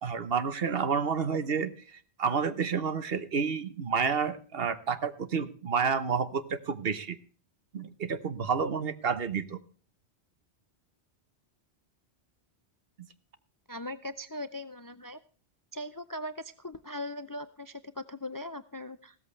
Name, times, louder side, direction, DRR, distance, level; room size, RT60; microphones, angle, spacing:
voice 1, 0.0-7.2 7.7-9.6, right 6 dB, 60° right, 12 dB, 1.2 m, -30 dB
voice 2, 13.7-15.2 15.7-19.2, left 1 dB, 30° left, 12 dB, 0.4 m, -39 dB
16.0 x 13.5 x 3.2 m, 0.40 s
omnidirectional pair, 1.1 m